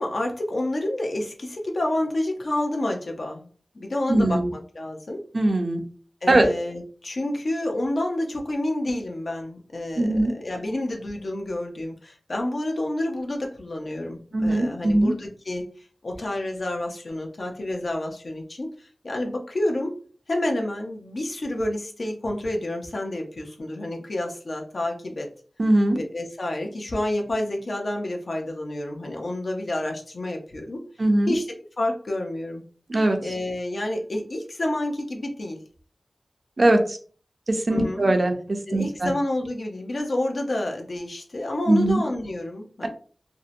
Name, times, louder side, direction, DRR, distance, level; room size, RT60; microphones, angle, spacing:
voice 1, 0.0-3.5 3.7-5.2 6.2-20.0 20.3-25.3 25.9-30.8 31.3-32.6 33.2-35.6 37.7-38.1 38.7-42.9, left 1 dB, 65° left, 2 dB, 0.5 m, -29 dB
voice 2, 4.1-4.5 5.3-5.8 6.3-6.4 10.0-10.3 14.3-15.1 25.6-26.0 31.0-31.3 32.9-33.2 36.6-37.0 37.5-38.3 38.7-39.1 41.7-42.0, right 1 dB, 55° right, 4 dB, 0.5 m, -20 dB
2.6 x 2.0 x 2.5 m, 0.42 s
wide cardioid pair, 55°, 0 cm